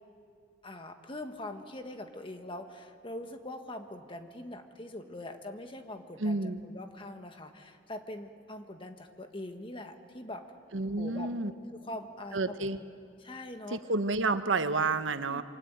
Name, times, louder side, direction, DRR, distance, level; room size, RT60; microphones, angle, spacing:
voice 1, 0.6-10.4 11.0-11.3 11.7-12.8 13.2-13.8 15.0-15.4, left 1 dB, 30° left, 6 dB, 1.5 m, -43 dB
voice 2, 6.2-6.6 10.7-11.5 12.3-12.8 13.7-15.4, right 3 dB, 90° right, 10 dB, 1.0 m, -30 dB
26.5 x 24.0 x 8.9 m, 2.4 s
head